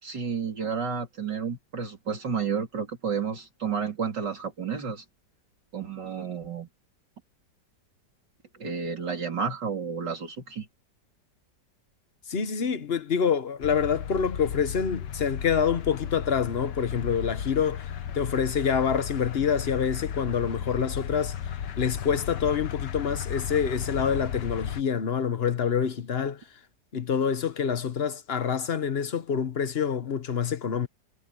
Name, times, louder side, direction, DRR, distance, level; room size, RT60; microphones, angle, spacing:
voice 1, 0.0-5.0 5.7-6.7 8.6-10.7, right 6 dB, 75° right, 4.0 m, -31 dB
voice 2, 12.3-21.4 21.8-26.4 26.9-30.9, left 7 dB, 40° left, 1.1 m, -27 dB
sound 1, 13.6-24.8, left 8 dB, 70° left, 1.8 m, -35 dB
omnidirectional pair, 1.9 m